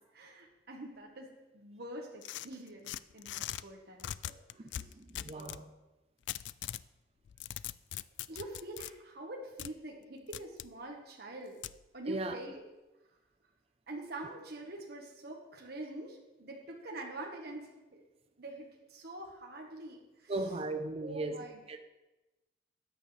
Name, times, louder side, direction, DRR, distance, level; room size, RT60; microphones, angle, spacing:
voice 1, 0.1-4.3 4.6-4.9 5.3-5.6 8.3-11.6 11.9-12.6 13.9-18.1 18.4-20.3 21.0-21.8, right 1 dB, 60° right, 1.4 m, -45 dB
sound 1, 2.2-3.6 4.0-5.6 6.3-6.9 7.3-8.9 9.6-9.7 10.3-10.7 11.6-11.8, left 12 dB, 80° left, 0.3 m, -41 dB
voice 2, 4.5-5.6 12.1-12.4 20.3-21.8, right 2 dB, 35° right, 0.6 m, -38 dB
13.5 x 9.4 x 3.3 m
head